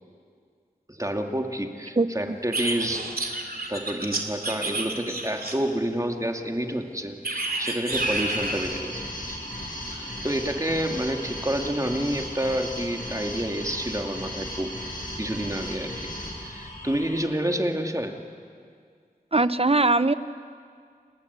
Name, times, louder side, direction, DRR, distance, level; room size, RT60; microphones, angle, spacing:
voice 1, 0.9-3.3 3.7-9.0 9.3-9.4 9.9-14.7 15.2-16.1 16.4-18.2, right 1 dB, 20° right, 3 dB, 2.4 m, -29 dB
voice 2, 2.0-2.4 19.3-20.1, right 2 dB, 40° right, 13 dB, 0.8 m, -21 dB
sound 1, 2.5-5.8 7.2-8.7, right 2 dB, 75° right, 2.9 m, -29 dB
sound 2, 7.9-17.3, equal, 65° left, 6.3 m, -36 dB
29.0 x 20.5 x 8.3 m, 2.1 s
wide cardioid pair, 50°, 16 cm